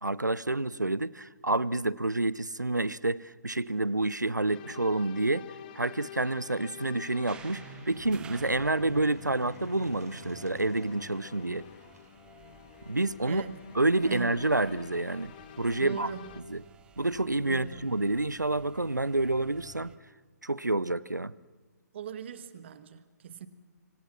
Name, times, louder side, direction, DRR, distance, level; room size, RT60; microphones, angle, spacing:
voice 1, 0.0-5.5 5.7-11.6 12.9-13.4 13.8-15.3 15.6-16.1 16.5-16.6 17.0-19.9 20.4-21.3, right 2 dB, 90° right, 0.7 m, -28 dB
sound 1, 4.5-16.4, left 11 dB, 30° left, 0.9 m, -49 dB
sound 2, 7.1-12.1, right 3 dB, 65° right, 3.5 m, -49 dB
sound 3, 7.3-20.0, right 8 dB, 10° right, 0.8 m, -54 dB
voice 2, 13.3-13.6 14.1-14.4 15.8-16.3 17.4-17.8 21.9-23.5, right 8 dB, 40° right, 1.5 m, -39 dB
26.0 x 24.5 x 6.0 m
figure-of-eight pair, 135°, 9 cm